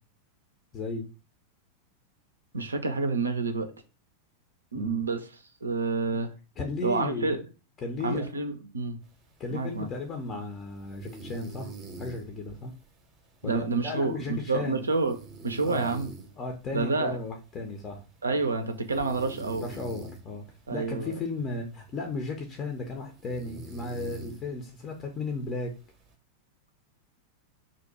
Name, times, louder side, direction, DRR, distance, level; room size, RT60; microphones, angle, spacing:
voice 1, 0.7-1.1 4.7-5.1 6.6-7.4 7.8-8.3 9.4-11.7 12.0-12.7 13.4-14.8 15.6-16.1 16.4-18.0 19.6-20.4 20.7-25.8, left 3 dB, 25° left, 2 dB, 0.5 m, -35 dB
voice 2, 2.5-3.7 4.7-6.3 6.8-7.4 8.0-9.0 9.5-9.9 13.4-15.2 15.4-16.1 16.7-17.2 18.2-19.7 20.7-21.1, right 3 dB, 75° right, 7 dB, 0.4 m, -28 dB
sound 1, 9.0-26.1, right 3 dB, 30° right, 0.6 m, -48 dB
2.6 x 2.1 x 4.0 m, 0.33 s
figure-of-eight pair, 90°, 0 cm